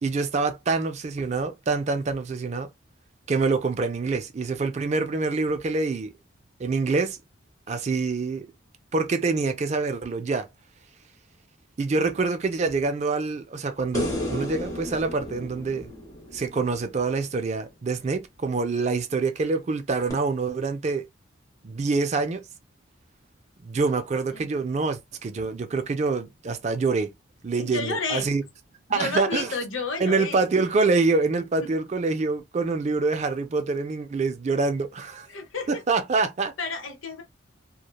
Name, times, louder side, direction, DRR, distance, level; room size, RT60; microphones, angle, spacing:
voice 1, 0.0-2.7 3.3-6.1 6.6-7.2 7.7-8.5 8.9-10.5 11.8-15.9 16.3-21.1 21.6-22.4 23.6-27.1 27.4-28.4 28.9-29.5 30.0-35.3 35.7-36.5, right 3 dB, 35° right, 0.4 m, -26 dB
sound 1, 13.9-17.3 20.1-20.2, left 1 dB, 15° left, 0.8 m, -33 dB
voice 2, 27.6-28.3 28.9-30.4 31.6-31.7 35.3-35.8 36.6-37.2, left 4 dB, 90° left, 0.8 m, -31 dB
3.0 x 2.1 x 2.2 m
head